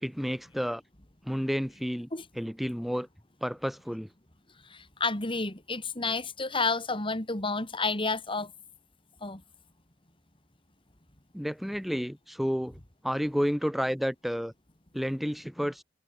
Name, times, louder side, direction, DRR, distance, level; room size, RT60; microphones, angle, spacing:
voice 1, 0.0-0.8 1.3-2.1 2.4-3.1 3.4-4.1 11.3-12.8 13.0-14.5 14.9-15.8, equal, ahead, 2.6 m, -30 dB
voice 2, 4.7-8.5 9.2-9.4, left 3 dB, 30° left, 3.7 m, -30 dB
head